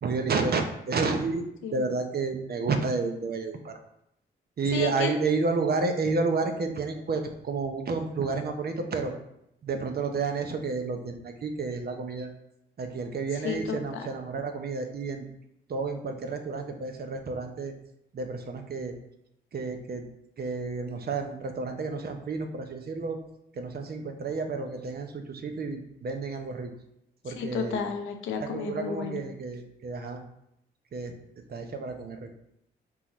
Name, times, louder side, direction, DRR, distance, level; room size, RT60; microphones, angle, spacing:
voice 1, 0.0-1.4 1.7-3.8 4.6-9.1 9.6-12.3 12.8-15.3 15.7-17.7 18.1-18.9 19.5-20.1 20.4-23.2 23.6-26.7 27.2-27.9 28.4-30.2 30.9-31.1 31.5-32.3, right 4 dB, 50° right, 5 dB, 0.7 m, -30 dB
voice 2, 4.7-5.1 13.4-14.0 27.3-29.2, left 6 dB, 80° left, 4 dB, 0.7 m, -32 dB
4.5 x 3.6 x 3.1 m, 0.80 s
supercardioid pair, 50°, 20 cm